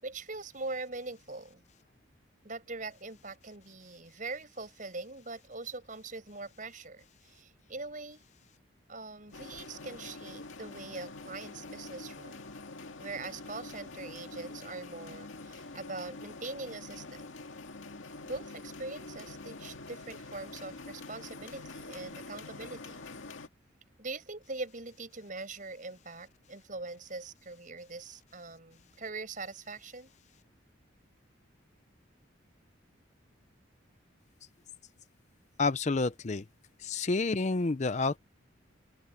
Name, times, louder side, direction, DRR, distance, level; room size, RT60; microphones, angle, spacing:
voice 1, 0.0-1.6 2.4-8.3 8.9-12.4 13.0-17.3 18.2-23.0 24.0-30.1, right 3 dB, 40° right, 5.9 m, -42 dB
sound 1, 9.3-23.5, left 3 dB, 85° left, 2.1 m, -46 dB
voice 2, 35.6-36.4 36.8-38.2, left 3 dB, 35° left, 0.5 m, -29 dB
open air
head